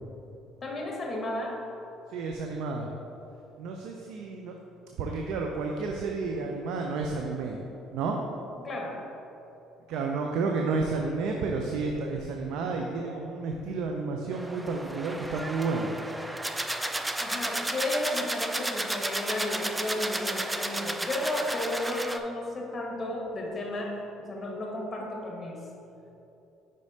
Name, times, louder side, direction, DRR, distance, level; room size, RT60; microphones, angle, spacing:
voice 1, 0.6-1.6 8.6-9.0 17.2-25.6, left 1 dB, 30° left, -1 dB, 1.4 m, -33 dB
voice 2, 2.1-2.9 3.6-4.5 5.0-8.2 9.9-15.9, right 4 dB, 75° right, 2 dB, 0.5 m, -31 dB
sound 1, 14.3-22.2, right 1 dB, 10° right, 0.4 m, -33 dB
5.4 x 5.0 x 4.1 m, 2.9 s
supercardioid pair, 85°, 0 cm